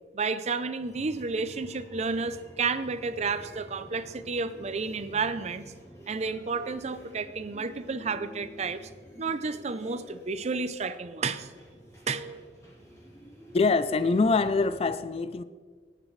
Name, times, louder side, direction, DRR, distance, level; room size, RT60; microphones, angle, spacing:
voice 1, 0.1-5.8 6.1-8.9 9.2-11.5 12.1-12.4, right 4 dB, 40° right, 0.5 m, -31 dB
sound 1, 0.8-14.7, equal, 20° left, 2.9 m, -50 dB
voice 2, 13.5-15.4, left 4 dB, 35° left, 0.4 m, -24 dB
18.5 x 9.0 x 3.2 m
head